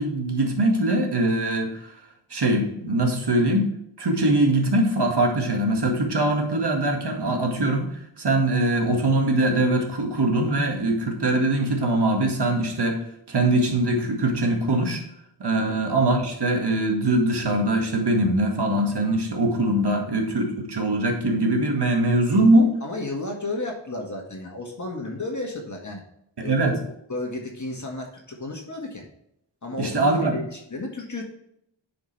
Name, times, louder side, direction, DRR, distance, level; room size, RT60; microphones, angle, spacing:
voice 1, 0.0-1.9 2.3-3.7 4.0-7.9 8.2-13.0 13.3-15.0 15.4-22.7 26.4-26.8 29.8-30.3, right 1 dB, 55° right, 3 dB, 1.9 m, -22 dB
voice 2, 22.8-26.0 26.4-26.7 27.1-29.0 29.6-31.2, left 2 dB, 40° left, 1 dB, 1.8 m, -33 dB
9.5 x 5.2 x 3.3 m, 0.75 s
wide cardioid pair, 75°, 46 cm